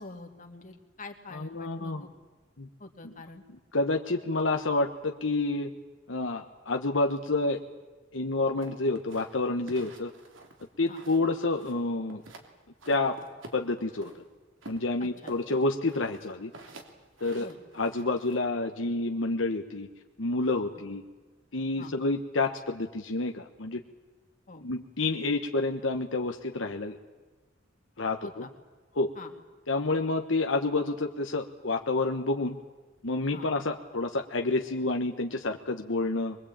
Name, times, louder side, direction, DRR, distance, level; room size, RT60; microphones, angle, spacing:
voice 1, 0.0-2.1 2.8-3.4 10.9-11.0 15.0-15.6 17.4-17.6 21.8-21.9 24.5-24.7 28.2-28.5 29.2-29.3 33.3-33.5, left 3 dB, 45° left, 4 dB, 2.4 m, -45 dB
voice 2, 1.3-2.1 2.6-2.7 3.0-3.1 3.5-5.7 6.1-7.6 8.1-10.1 10.8-12.2 12.9-13.2 13.5-14.2 14.7-16.5 17.2-17.5 17.7-19.9 20.2-21.0 21.5-23.8 24.6-27.0 28.0-28.5 28.9-29.1 29.7-32.6 33.0-36.4, left 2 dB, 80° left, 4 dB, 1.2 m, -29 dB
sound 1, 8.6-11.3 11.6-12.5 12.8-14.2 14.6-18.4, right 2 dB, 85° right, 3.1 m, -49 dB
23.0 x 22.5 x 8.8 m, 1.3 s
head